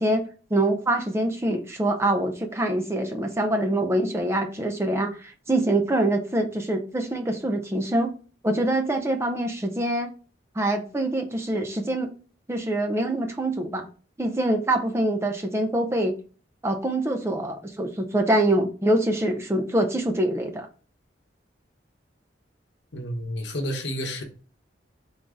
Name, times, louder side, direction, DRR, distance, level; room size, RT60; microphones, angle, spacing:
voice 1, 0.0-8.1 8.4-10.1 10.6-12.1 12.5-13.9 14.2-16.1 16.6-20.7, right 1 dB, 15° right, 0.5 m, -25 dB
voice 2, 22.9-24.2, equal, 65° left, 0.9 m, -30 dB
3.9 x 3.5 x 3.6 m
head